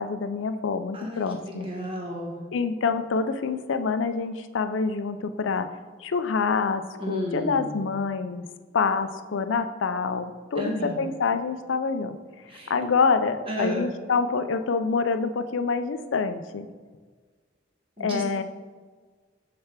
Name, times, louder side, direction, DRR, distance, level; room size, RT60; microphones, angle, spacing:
voice 1, 0.0-1.7 2.5-5.7 6.0-8.4 8.7-12.2 12.7-16.7 18.0-18.4, left 5 dB, 80° left, 10 dB, 0.5 m, -26 dB
voice 2, 0.9-2.4 7.0-7.8 10.5-11.0 12.5-12.7 13.5-13.8 18.0-18.4, equal, 30° right, -1 dB, 1.2 m, -32 dB
6.6 x 3.4 x 5.8 m, 1.5 s
head